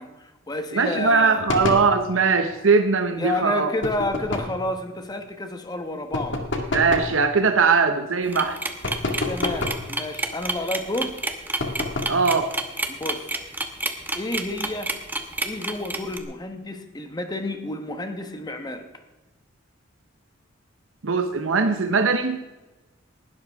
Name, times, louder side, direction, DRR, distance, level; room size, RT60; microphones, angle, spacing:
voice 1, 0.0-1.4 3.2-6.5 9.2-11.2 12.9-13.3 14.1-14.9 15.4-18.9, left 1 dB, 20° left, 6 dB, 1.0 m, -30 dB
voice 2, 0.7-3.7 6.7-8.6 12.1-12.5 21.0-22.4, right 4 dB, 85° right, 8 dB, 0.8 m, -20 dB
sound 1, 1.5-1.9 3.8-4.6 6.1-7.2 8.8-9.9 11.6-12.2, left 2 dB, 65° left, 2.0 m, -28 dB
sound 2, 8.3-16.2, right 2 dB, 10° right, 1.1 m, -28 dB
19.5 x 12.0 x 3.5 m, 1.1 s
head